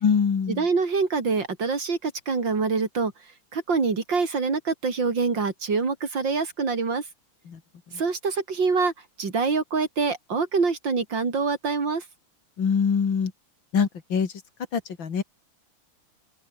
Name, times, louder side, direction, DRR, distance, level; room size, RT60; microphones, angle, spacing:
voice 1, 0.0-0.7 7.5-7.6 7.9-8.0 12.6-13.3 13.7-14.3 14.7-15.2, left 6 dB, 60° left, 2.9 m, -24 dB
voice 2, 0.6-3.1 3.5-7.0 8.0-8.9 9.2-12.0, right 4 dB, 55° right, 3.7 m, -25 dB
omnidirectional pair, 2.4 m